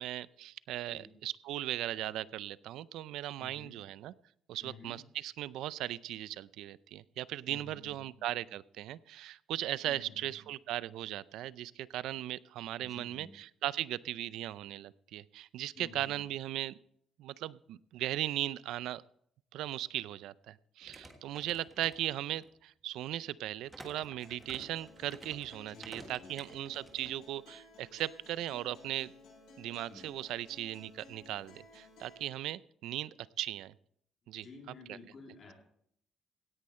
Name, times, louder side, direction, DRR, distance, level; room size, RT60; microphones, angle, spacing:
voice 1, 0.0-4.1 4.5-16.8 17.2-19.0 19.5-29.1 29.6-33.7 34.3-34.5 34.9-35.0, right 13 dB, 90° right, 19 dB, 0.4 m, -38 dB
voice 2, 3.4-3.8 4.6-5.0 7.5-8.1 9.8-10.4 12.8-13.3 15.7-16.1 25.7-26.4 29.8-30.0 34.4-35.5, left 3 dB, 35° left, 1 dB, 3.1 m, -52 dB
sound 1, 20.8-22.5 23.7-27.1, right 1 dB, 10° right, 1.5 m, -53 dB
Acoustic guitar, 24.2-32.2, left 2 dB, 75° left, 6.7 m, -56 dB
17.0 x 10.0 x 4.4 m, 0.70 s
cardioid pair, 175°, 0 cm